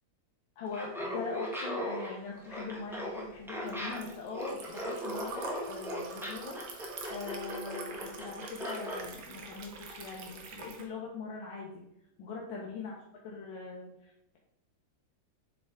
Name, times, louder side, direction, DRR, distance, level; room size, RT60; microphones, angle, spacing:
voice 1, 0.6-6.6 7.1-11.7 12.2-12.9 13.2-14.4, left 4 dB, 90° left, -3 dB, 1.7 m, -41 dB
Laughter, 0.7-9.0, equal, ahead, 0.5 m, -38 dB
Liquid, 2.6-10.9, right 4 dB, 75° right, 1.6 m, -46 dB
7.5 x 3.7 x 3.6 m, 0.82 s
omnidirectional pair, 2.1 m